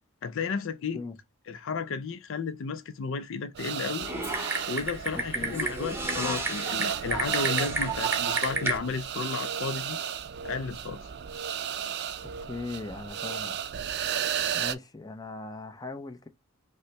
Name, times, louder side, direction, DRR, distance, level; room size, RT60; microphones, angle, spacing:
voice 1, 0.2-1.0 1.5-4.1 4.7-10.0 10.4-11.1, left 5 dB, 65° left, 0.4 m, -33 dB
sound 1, 3.6-14.7, right 8 dB, 50° right, 0.4 m, -33 dB
Typing, 4.0-8.8, right 3 dB, 10° right, 0.9 m, -31 dB
voice 2, 5.1-5.6 12.5-13.6 14.5-16.3, left 3 dB, 20° left, 0.6 m, -39 dB
5.4 x 2.1 x 3.2 m
head